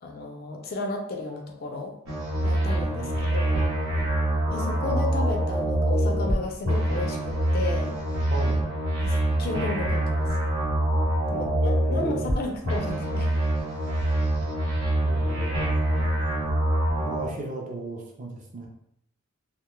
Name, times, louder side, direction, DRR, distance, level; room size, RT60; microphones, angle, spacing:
voice 1, 0.0-1.9 2.4-3.7 4.5-7.9 9.0-10.4 11.3-13.3, left 3 dB, 45° left, 2 dB, 0.3 m, -33 dB
sound 1, 2.1-6.4 6.6-12.4 12.6-17.3, right 1 dB, 80° right, 0.9 m, -25 dB
voice 2, 2.9-3.2 8.3-8.7 11.3-12.2 15.0-15.5 16.9-18.7, right 2 dB, 35° right, -1 dB, 0.5 m, -37 dB
2.2 x 2.1 x 2.9 m, 0.74 s
head